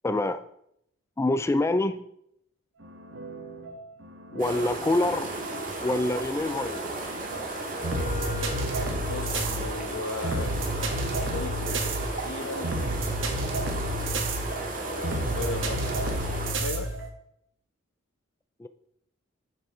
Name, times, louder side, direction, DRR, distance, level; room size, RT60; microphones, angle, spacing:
voice 1, 0.0-0.4 1.2-2.0 4.3-5.3 5.8-6.9 18.6-18.7, left 2 dB, 15° left, 0.3 m, -26 dB
sound 1, 2.8-17.1, right 1 dB, 70° right, 1.5 m, -32 dB
sound 2, 4.4-16.6, right 2 dB, 45° right, 2.2 m, -34 dB
Wind instrument woodwind instrument, 7.6-14.3, left 6 dB, 40° left, 1.1 m, -44 dB
voice 2, 9.1-12.9 14.8-17.0, left 3 dB, 85° left, 1.0 m, -37 dB
7.0 x 6.7 x 4.9 m
head